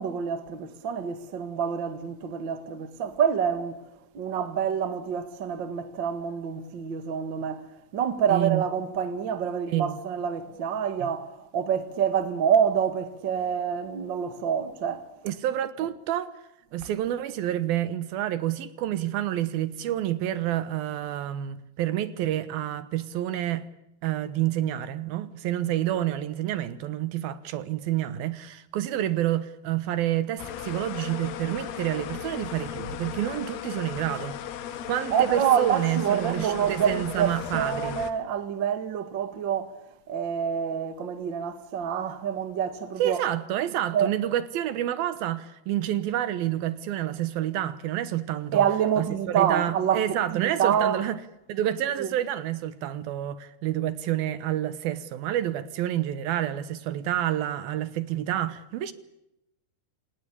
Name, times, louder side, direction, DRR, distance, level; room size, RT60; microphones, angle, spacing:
voice 1, 0.0-3.8 4.1-7.7 7.9-15.1 35.1-39.7 40.1-43.2 43.9-44.1 48.5-51.0 52.0-52.1, right 8 dB, 45° right, 1.7 m, -27 dB
voice 2, 8.3-8.6 9.7-10.0 11.0-11.1 15.2-16.4 16.7-23.7 24.0-34.4 34.9-38.0 43.0-48.7 49.0-51.2 51.5-58.9, right 12 dB, 75° right, 2.8 m, -28 dB
sound 1, 30.4-38.1, left 10 dB, 85° left, 3.6 m, -36 dB
28.5 x 18.5 x 8.4 m
omnidirectional pair, 4.5 m